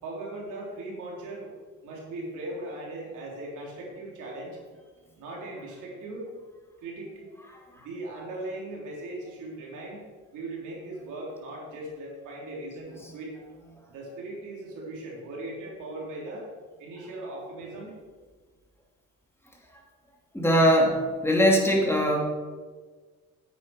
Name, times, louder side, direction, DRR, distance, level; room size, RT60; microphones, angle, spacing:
voice 1, 0.0-1.5 1.8-4.9 5.2-6.3 6.8-7.3 7.7-10.0 10.3-13.4 13.9-16.5 16.8-17.9, right 2 dB, 85° right, -3 dB, 3.4 m, -39 dB
voice 2, 20.3-22.2, equal, 10° left, -1 dB, 2.5 m, -21 dB
9.4 x 8.3 x 4.9 m, 1.5 s
cardioid pair, 90°, 30 cm